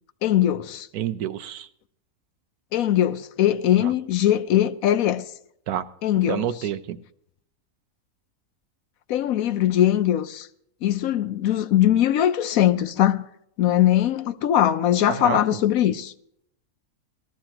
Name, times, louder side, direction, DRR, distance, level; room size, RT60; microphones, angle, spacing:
voice 1, 0.2-0.9 2.7-5.2 6.0-6.4 9.1-10.5 10.8-13.2 13.6-16.1, left 11 dB, 75° left, 1.1 m, -21 dB
voice 2, 0.9-1.7 3.8-3.9 5.7-5.9 6.3-7.0 15.1-15.6, right 11 dB, 85° right, 1.2 m, -28 dB
19.0 x 13.5 x 2.9 m
omnidirectional pair, 1.5 m